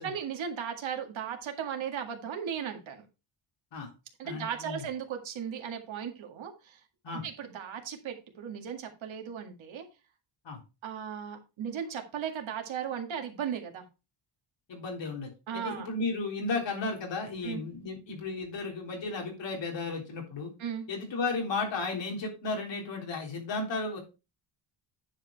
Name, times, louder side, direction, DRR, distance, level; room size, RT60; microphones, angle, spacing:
voice 1, 0.0-3.1 4.2-6.8 7.1-9.8 10.8-13.8 15.5-15.9 17.4-17.6 20.6-20.9, right 8 dB, 70° right, 4 dB, 2.0 m, -36 dB
voice 2, 4.2-4.8 7.0-7.2 10.4-10.6 14.7-20.5 20.9-24.0, left 3 dB, 60° left, 1 dB, 3.7 m, -34 dB
10.0 x 4.9 x 4.6 m, 0.28 s
wide cardioid pair, 165°, 49 cm